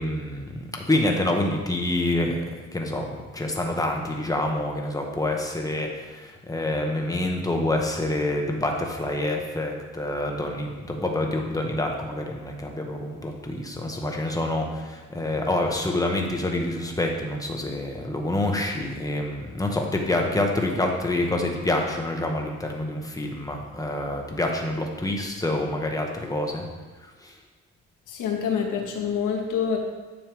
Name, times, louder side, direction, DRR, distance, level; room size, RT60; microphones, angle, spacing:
voice 1, 0.0-2.4 2.7-26.7 27.0-27.4, left 1 dB, 10° left, 1 dB, 1.4 m, -27 dB
voice 2, 28.1-29.8, left 7 dB, 80° left, 1 dB, 1.6 m, -26 dB
9.4 x 6.7 x 3.6 m, 1.3 s
cardioid pair, 90°, 30 cm